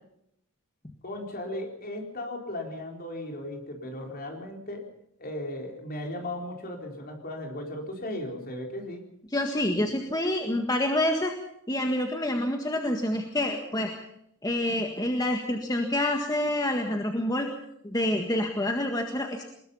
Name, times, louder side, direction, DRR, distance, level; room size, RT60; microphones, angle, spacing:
voice 1, 1.0-4.9 5.2-9.0, left 1 dB, 45° left, 2 dB, 4.3 m, -36 dB
voice 2, 9.3-11.3 11.7-14.0 14.4-17.5 17.8-19.4, left 1 dB, 15° left, 3 dB, 1.7 m, -27 dB
22.5 x 20.5 x 5.6 m, 0.76 s
head